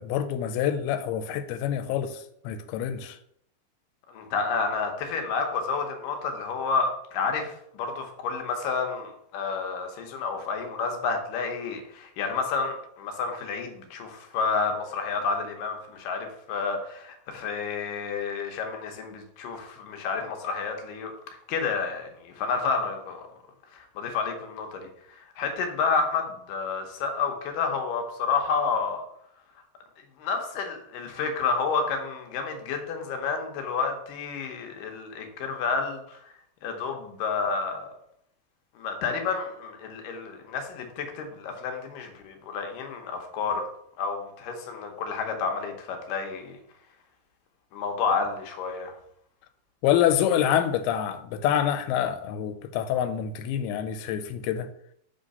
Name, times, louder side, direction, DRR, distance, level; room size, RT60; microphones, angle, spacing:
voice 1, 0.0-3.2 49.8-54.7, left 10 dB, 90° left, 2.5 m, -26 dB
voice 2, 4.1-21.1 21.5-23.3 23.7-24.9 25.4-29.0 30.2-36.2 36.6-37.9 38.8-43.7 44.0-46.6 47.7-48.9, left 5 dB, 75° left, 2.3 m, -30 dB
5.4 x 3.7 x 5.3 m
omnidirectional pair, 4.4 m